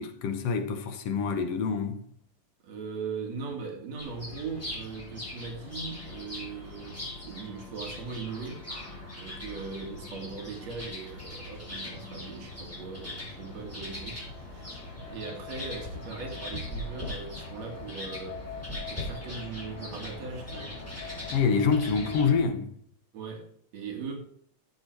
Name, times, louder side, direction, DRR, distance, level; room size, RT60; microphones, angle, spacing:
voice 1, 0.0-2.0 21.3-22.7, left 5 dB, 60° left, 1.9 m, -26 dB
voice 2, 2.6-8.6 9.2-18.4 18.9-20.8 23.1-24.2, right 5 dB, 65° right, 3.0 m, -39 dB
sound 1, 4.0-22.4, left 2 dB, 5° left, 4.0 m, -40 dB
13.0 x 7.4 x 4.6 m
omnidirectional pair, 3.4 m